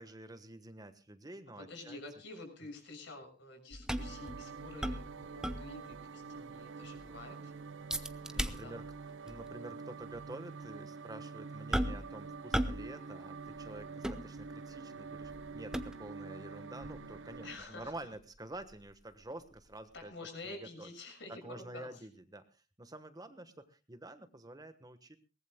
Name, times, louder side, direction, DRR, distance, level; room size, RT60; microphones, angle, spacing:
voice 1, 0.0-2.0 8.3-8.8 9.2-20.1 20.4-20.9 21.3-25.2, right 1 dB, 20° right, 10 dB, 1.3 m, -49 dB
voice 2, 1.6-7.5 8.3-8.8 17.4-17.9 19.9-22.1, left 2 dB, 70° left, 5 dB, 6.7 m, -49 dB
sound 1, 3.7-6.0 6.4-6.5 6.8-7.2 7.9-9.0 9.3-9.5 10.1-10.3 11.7-12.2 12.5-12.9 13.2-14.8 15.2-16.2 16.8-19.6 20.0-20.1, equal, 5° right, 1.0 m, -38 dB
sound 2, 4.0-17.6, right 4 dB, 85° right, 0.8 m, -47 dB
22.5 x 19.5 x 2.2 m, 0.32 s
head